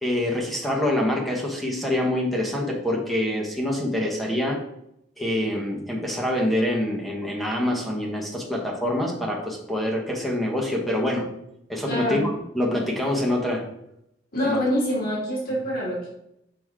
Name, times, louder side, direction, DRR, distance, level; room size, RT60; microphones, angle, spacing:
voice 1, 0.0-4.6 5.2-11.3 11.7-13.7 14.4-14.6, left 1 dB, ahead, -1 dB, 1.2 m, -25 dB
voice 2, 11.9-12.2 14.3-16.1, equal, 50° left, -5 dB, 2.6 m, -25 dB
6.5 x 5.3 x 3.6 m, 0.79 s
head